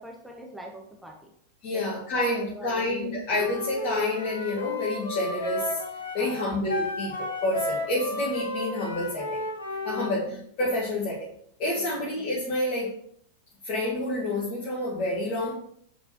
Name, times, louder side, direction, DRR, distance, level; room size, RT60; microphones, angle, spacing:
voice 1, 0.0-1.3 1.7-1.8 2.4-3.2 6.2-6.5 9.9-10.2 11.8-12.1, right 1 dB, 5° right, 0 dB, 1.1 m, -44 dB
voice 2, 1.6-5.8 6.1-9.4 9.8-11.3 11.6-12.9 13.6-15.5, left 1 dB, 40° left, -6 dB, 1.4 m, -28 dB
Wind instrument woodwind instrument, 3.3-10.1, left 1 dB, 70° left, 1.8 m, -33 dB
7.5 x 4.6 x 2.8 m, 0.67 s
figure-of-eight pair, 90°, 0 cm